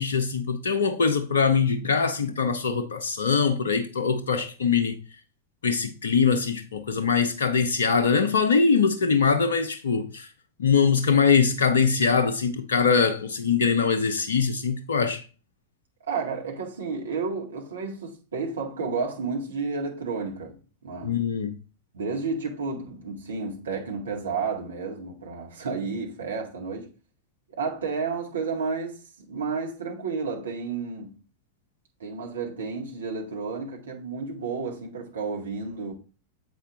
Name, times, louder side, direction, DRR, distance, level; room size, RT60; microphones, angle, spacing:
voice 1, 0.0-5.0 5.6-10.3 10.6-15.2 21.0-21.6, left 5 dB, 65° left, 0.6 m, -23 dB
voice 2, 16.1-20.6 20.8-21.2 21.9-26.9 27.5-31.2 32.0-35.9, right 4 dB, 70° right, 1.9 m, -31 dB
7.6 x 5.3 x 2.5 m
figure-of-eight pair, 90°, 0 cm